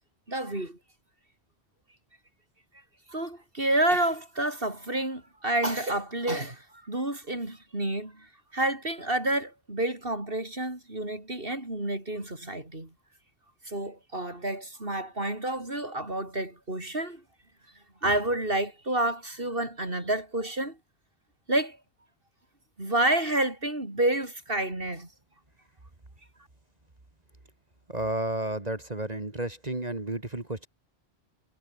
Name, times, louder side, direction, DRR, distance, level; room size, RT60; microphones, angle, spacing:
voice 1, 0.3-0.8 3.1-12.9 13.6-17.2 18.0-20.8 21.5-21.8 22.8-25.1, right 1 dB, 60° right, 5.7 m, -29 dB
voice 2, 27.9-30.7, right 1 dB, 40° right, 2.8 m, -32 dB
omnidirectional pair, 1.1 m